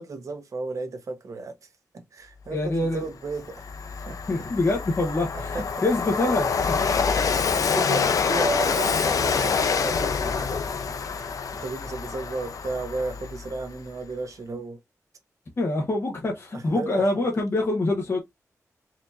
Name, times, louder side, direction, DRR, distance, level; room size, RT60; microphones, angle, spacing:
voice 1, 0.0-1.7 1.9-4.2 5.3-5.7 6.7-14.8 16.5-17.2, right 3 dB, 60° right, 1.1 m, -34 dB
voice 2, 2.5-3.0 4.3-7.0 15.6-18.2, left 2 dB, 45° left, 1.1 m, -25 dB
Train, 2.8-2.9 3.3-13.7, left 5 dB, 70° left, 0.5 m, -26 dB
4.3 x 2.8 x 2.6 m
wide cardioid pair, 110°, 6 cm